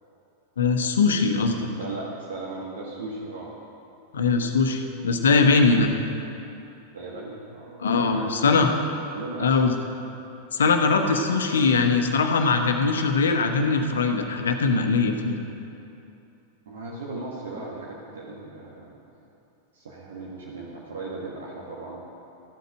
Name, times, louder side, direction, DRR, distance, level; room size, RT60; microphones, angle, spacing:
voice 1, 0.6-1.7 4.1-5.9 7.8-8.7 9.4-9.7 10.5-15.4, left 4 dB, 65° left, 5 dB, 1.1 m, -21 dB
voice 2, 1.8-3.5 6.9-8.5 9.1-9.6 11.2-11.4 16.6-18.9 19.7-22.0, right 3 dB, 65° right, -4 dB, 1.6 m, -37 dB
14.0 x 8.0 x 6.4 m, 2.8 s
figure-of-eight pair, 90°, 0 cm